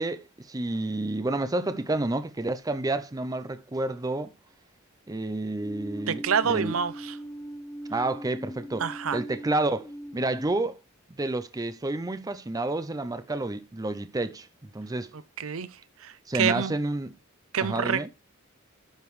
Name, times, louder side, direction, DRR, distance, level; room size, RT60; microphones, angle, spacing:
voice 1, 0.0-4.3 5.1-6.8 7.9-8.9 9.1-9.9 10.1-10.8 11.2-15.1 16.3-17.1 17.6-18.1, right 2 dB, 15° right, 0.5 m, -29 dB
sound 1, 5.6-10.5, right 1 dB, 15° left, 0.8 m, -40 dB
voice 2, 6.1-7.2 8.8-9.2 15.4-15.7 16.0-16.7 17.5-18.1, right 7 dB, 75° right, 0.7 m, -27 dB
12.0 x 5.1 x 3.2 m
head